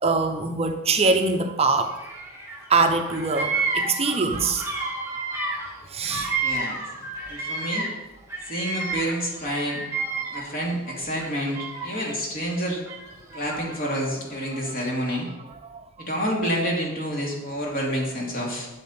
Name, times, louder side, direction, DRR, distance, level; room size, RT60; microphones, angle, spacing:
voice 1, 0.0-1.9 2.7-4.7 5.0-5.2 5.9-6.3 10.0-10.1 15.6-15.8, right 3 dB, 30° right, 6 dB, 0.7 m, -23 dB
Bird vocalization bird call bird song, 1.9-2.7 2.9-8.0 8.3-10.7 11.2-12.1 12.9-13.9, right 3 dB, 15° right, 1.8 m, -31 dB
voice 2, 6.4-6.8 7.3-7.9 8.5-9.8 10.3-12.8 13.3-15.3 16.0-18.7, equal, 45° left, -2 dB, 2.7 m, -28 dB
12.0 x 7.4 x 4.4 m, 1.0 s
head